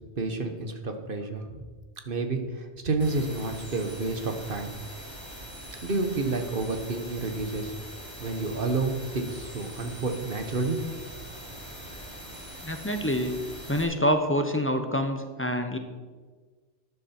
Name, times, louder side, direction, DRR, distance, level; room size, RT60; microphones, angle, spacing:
voice 1, 0.2-1.7 2.0-4.8 5.8-7.7 8.2-10.8, right 3 dB, 50° right, 6 dB, 1.4 m, -30 dB
sound 1, 3.0-13.8, equal, 20° right, 3.2 m, -42 dB
voice 2, 12.6-13.3 13.7-15.8, equal, 10° left, 5 dB, 0.9 m, -26 dB
12.5 x 10.5 x 4.4 m, 1.4 s
omnidirectional pair, 1.2 m